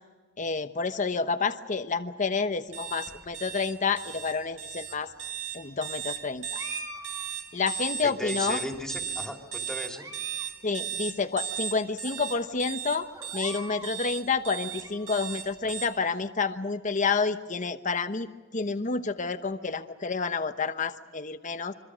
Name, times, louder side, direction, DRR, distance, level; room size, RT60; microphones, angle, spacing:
voice 1, 0.4-5.1 5.5-6.6 7.5-8.6 10.6-13.1 13.3-21.7, left 4 dB, 40° left, 9 dB, 1.0 m, -29 dB
sound 1, 2.7-15.8, right 9 dB, 80° right, 6.2 m, -36 dB
sound 2, 6.5-7.9 8.6-9.3 9.8-10.5 10.8-10.9 11.6-11.7 12.0-12.2 13.1-14.0 14.4-15.4, right 2 dB, 20° right, 1.8 m, -44 dB
voice 2, 8.0-10.1, equal, 5° left, 2 dB, 2.9 m, -36 dB
26.0 x 24.0 x 6.3 m, 1.4 s
head